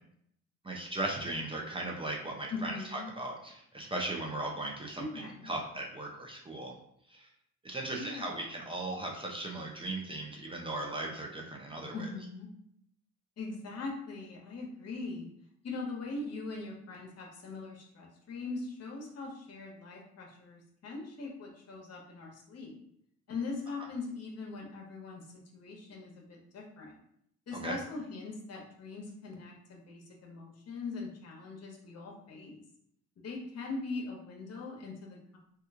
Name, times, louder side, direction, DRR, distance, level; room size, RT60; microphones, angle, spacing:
voice 1, 0.6-6.8 7.1-7.3 7.6-12.0 27.6-27.8, right 2 dB, 20° right, -1 dB, 0.6 m, -37 dB
voice 2, 2.5-3.1 5.0-5.5 7.9-8.5 11.9-12.5 13.4-15.3 15.6-22.8 23.3-27.0 27.5-32.6 33.2-35.4, left 3 dB, 55° left, 0 dB, 0.9 m, -41 dB
3.0 x 2.4 x 3.5 m, 0.70 s
cardioid pair, 90°, 30 cm